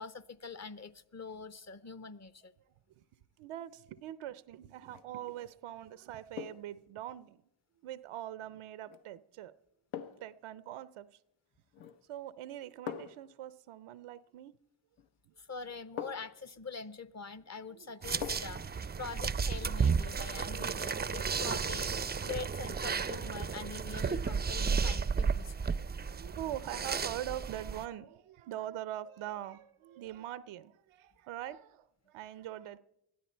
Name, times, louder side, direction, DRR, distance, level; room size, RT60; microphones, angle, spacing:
voice 1, 0.0-2.5 15.4-25.7, left 4 dB, 35° left, 1.0 m, -44 dB
voice 2, 3.4-7.4 7.8-9.5 10.0-11.1 11.8-14.6 15.3-15.4 17.7-17.9 19.8-20.1 21.0-22.3 23.7-23.8 24.6-24.8 25.1-25.2 26.0-32.8, right 12 dB, 85° right, 0.6 m, -43 dB
sound 1, 4.8-5.1 6.4-6.8 8.9-9.1 9.9-10.4 11.7-12.1 12.9-13.3 15.0-15.1 16.0-16.4 18.2-18.7 19.0-19.1, left 9 dB, 70° left, 1.0 m, -43 dB
sound 2, 18.0-27.8, right 5 dB, 20° right, 0.5 m, -33 dB
20.5 x 13.0 x 4.4 m
supercardioid pair, 45°, 48 cm